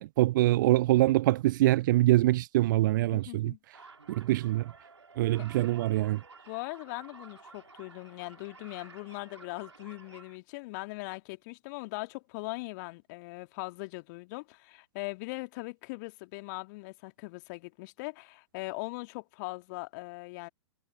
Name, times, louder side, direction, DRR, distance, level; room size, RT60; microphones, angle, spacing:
voice 1, 0.0-3.5 4.1-4.7 5.2-6.2, right 16 dB, 45° right, 0.4 m, -24 dB
voice 2, 3.1-3.6 5.4-5.5 6.5-20.5, left 26 dB, 40° left, 2.0 m, -40 dB
sound 1, 3.7-10.4, right 4 dB, 80° right, 2.6 m, -53 dB
figure-of-eight pair, 105°, 14 cm